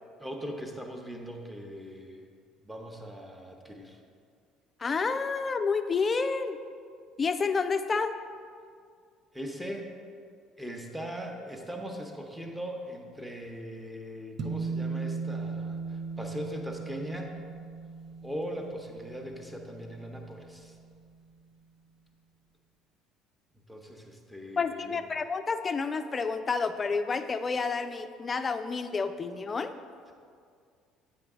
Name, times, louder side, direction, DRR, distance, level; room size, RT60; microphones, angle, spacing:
voice 1, 0.2-2.3 2.6-4.0 9.3-9.9 10.6-17.4 18.2-20.8 23.5-25.0, equal, 5° right, 2 dB, 0.9 m, -40 dB
voice 2, 4.8-6.6 7.2-8.1 24.6-29.7, left 4 dB, 30° left, 10 dB, 0.4 m, -29 dB
sound 1, 14.4-21.0, right 4 dB, 45° right, 0.6 m, -38 dB
8.7 x 4.8 x 3.7 m, 2.2 s
figure-of-eight pair, 55°, 0 cm